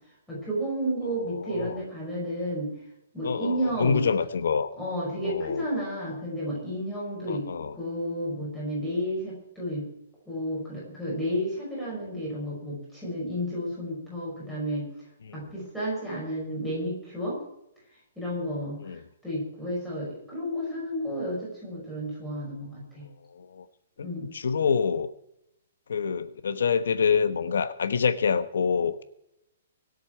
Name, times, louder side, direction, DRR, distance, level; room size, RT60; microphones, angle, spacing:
voice 1, 0.3-2.7 3.1-4.1 4.8-7.5 7.7-9.8 10.3-14.9 15.3-17.4 18.2-19.0 19.2-23.0 24.0-24.3, equal, ahead, -8 dB, 5.6 m, -31 dB
voice 2, 1.1-1.8 3.2-4.7 5.2-5.6 7.3-7.8 15.2-15.4 18.8-19.0 23.3-23.6 24.0-24.1 24.3-25.1 25.9-29.0, left 6 dB, 75° left, 10 dB, 1.1 m, -26 dB
24.0 x 8.2 x 4.6 m, 0.80 s
hypercardioid pair, 180°, 0 cm